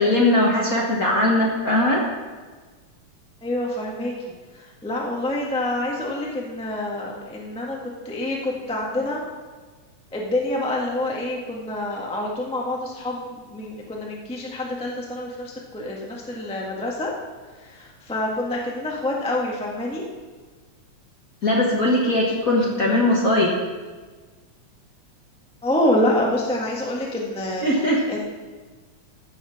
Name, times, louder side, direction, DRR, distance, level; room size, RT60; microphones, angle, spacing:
voice 1, 0.0-2.0 21.4-23.5 27.6-28.0, left 1 dB, 45° left, -3 dB, 1.1 m, -20 dB
voice 2, 3.4-4.1 4.5-9.2 10.1-17.1 17.5-20.0 25.6-28.2, left 1 dB, 5° left, -2 dB, 0.4 m, -27 dB
15.0 x 5.7 x 5.8 m, 1.4 s
omnidirectional pair, 3.4 m